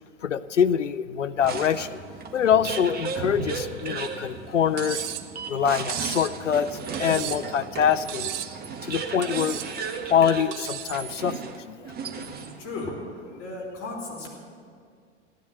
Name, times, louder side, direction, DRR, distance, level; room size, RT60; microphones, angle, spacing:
voice 1, 0.2-2.0 2.3-5.0 5.5-8.5 8.8-9.6 10.1-11.9, left 8 dB, 85° left, 13 dB, 0.6 m, -24 dB
sound 1, 1.4-12.7, right 5 dB, 25° right, 1.5 m, -35 dB
Cutlery silverware, 4.8-5.3 5.9-6.3 6.9-7.5 8.1-8.6 9.2-9.7 10.5-10.9, right 11 dB, 45° right, 1.0 m, -34 dB
voice 2, 12.6-12.9 13.4-14.3, left 3 dB, 40° left, -1 dB, 4.6 m, -34 dB
16.0 x 10.5 x 7.9 m, 2.2 s
figure-of-eight pair, 95°, 36 cm